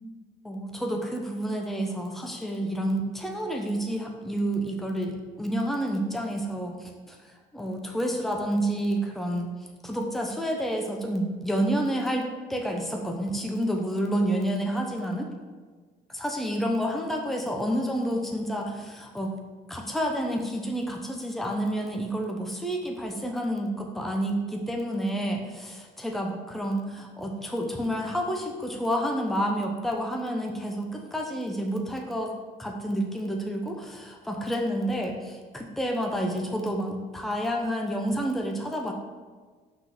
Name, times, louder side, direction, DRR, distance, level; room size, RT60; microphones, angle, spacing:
voice 1, 0.4-9.5 9.8-15.3 16.1-19.3 19.7-25.4 26.0-38.9, right 1 dB, ahead, 2 dB, 0.8 m, -29 dB
5.8 x 3.9 x 6.0 m, 1.4 s
cardioid pair, 110°, 17 cm